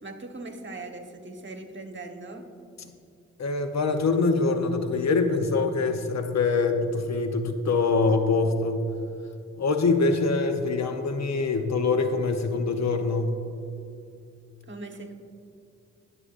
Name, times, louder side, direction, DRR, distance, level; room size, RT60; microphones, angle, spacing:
voice 1, 0.0-2.5 14.6-15.1, right 2 dB, 40° right, 4 dB, 1.3 m, -40 dB
voice 2, 3.4-8.8 9.6-13.4, left 3 dB, 60° left, 7 dB, 0.9 m, -24 dB
16.5 x 6.8 x 2.5 m, 2.5 s
supercardioid pair, 45°, 31 cm